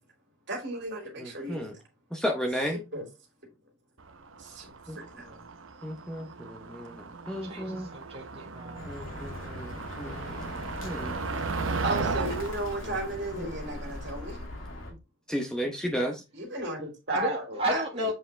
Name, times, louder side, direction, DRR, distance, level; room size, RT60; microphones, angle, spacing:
voice 1, 0.5-1.7 2.9-3.1 4.4-5.4 11.8-14.4 14.9-15.0 16.3-18.1, right 2 dB, 55° right, 2.8 m, -35 dB
voice 2, 1.2-1.7 2.1-2.8 4.9-5.0 5.8-7.9 8.9-10.5 10.8-11.2 13.4-13.5 15.3-16.2, equal, 5° left, 0.8 m, -33 dB
Motor vehicle (road), 4.1-14.4, right 4 dB, 70° right, 0.8 m, -36 dB
voice 3, 7.2-8.8 17.1-18.1, equal, 30° right, 1.6 m, -33 dB
Bird, 8.7-14.9, left 1 dB, 70° left, 2.4 m, -40 dB
7.5 x 4.9 x 3.3 m
head